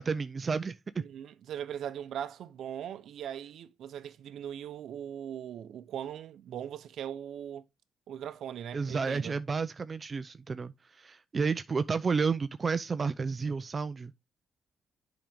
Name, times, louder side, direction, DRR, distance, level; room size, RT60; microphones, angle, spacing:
voice 1, 0.0-1.0 8.7-14.1, right 5 dB, 35° right, 0.4 m, -31 dB
voice 2, 1.0-7.6 8.1-9.4, right 9 dB, 70° right, 0.7 m, -40 dB
7.7 x 5.1 x 3.5 m
cardioid pair, 90°, 0 cm